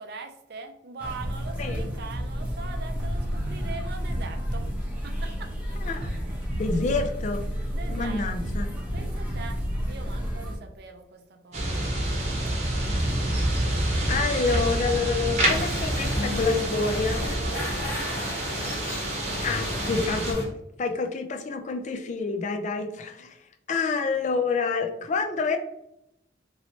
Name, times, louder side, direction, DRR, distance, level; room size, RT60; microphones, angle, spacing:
voice 1, 0.0-4.6 5.0-5.5 7.7-8.3 8.9-9.6 9.9-12.7 13.5-14.2 17.3-18.4, right 4 dB, 55° right, 5 dB, 0.5 m, -42 dB
sound 1, 1.0-10.6, equal, 10° right, 0.8 m, -31 dB
voice 2, 6.5-7.4 7.9-8.7 14.1-17.2 19.4-20.4 20.8-23.4 23.7-25.6, left 4 dB, 40° left, 6 dB, 0.3 m, -27 dB
sound 2, 11.5-20.3, right 1 dB, 35° right, 0.8 m, -28 dB
sound 3, 15.4-20.4, left 1 dB, 55° left, 1.0 m, -32 dB
3.1 x 2.9 x 2.7 m, 0.82 s
head